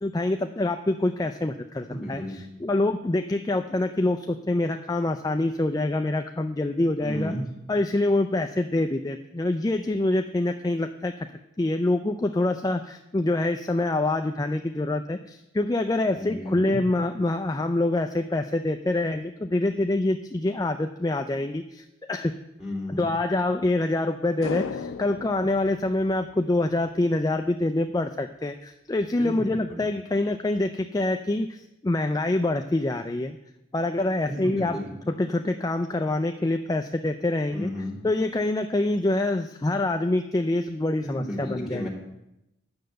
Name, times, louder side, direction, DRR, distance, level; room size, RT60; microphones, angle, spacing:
voice 1, 0.0-7.3 7.7-11.3 11.6-22.3 22.9-33.4 33.7-34.8 35.1-37.7 38.0-41.9, left 2 dB, 20° left, 7 dB, 0.3 m, -26 dB
voice 2, 1.9-2.4 7.0-7.4 16.1-16.8 22.6-23.1 29.2-29.8 34.3-34.9 37.5-37.9 41.0-41.9, equal, ahead, -5 dB, 3.1 m, -33 dB
sound 1, 24.4-26.9 27.2-27.3, left 5 dB, 90° left, 0.5 m, -36 dB
9.7 x 6.4 x 7.8 m, 0.89 s
head